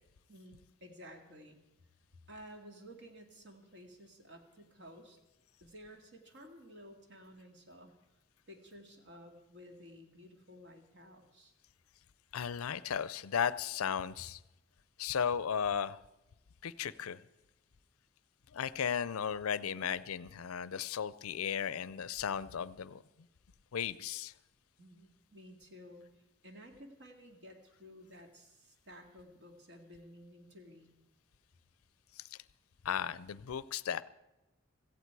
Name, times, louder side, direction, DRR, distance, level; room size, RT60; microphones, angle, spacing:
voice 1, 0.3-1.6 2.3-5.2 5.6-7.9 8.5-11.5 24.8-31.0, equal, 55° right, 4 dB, 2.1 m, -54 dB
voice 2, 12.3-14.4 15.0-16.0 16.6-17.2 18.5-23.0 23.7-24.3 32.8-34.0, left 8 dB, 80° left, 18 dB, 0.5 m, -35 dB
16.5 x 14.5 x 4.7 m, 1.0 s
head